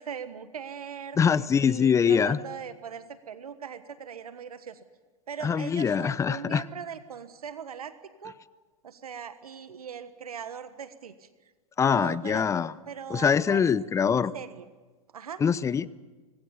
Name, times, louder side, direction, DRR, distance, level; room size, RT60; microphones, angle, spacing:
voice 1, 0.0-1.2 1.6-4.8 5.3-7.9 8.2-8.3 8.8-11.3 11.9-12.4 12.9-13.6 14.1-14.7 15.1-15.4, right 7 dB, 85° right, 12 dB, 1.4 m, -40 dB
voice 2, 1.2-2.4 5.4-6.6 11.8-12.7 13.1-14.3 15.4-15.9, left 7 dB, 15° left, 19 dB, 0.7 m, -23 dB
25.0 x 20.0 x 7.2 m, 1.3 s
hypercardioid pair, 110°, 19 cm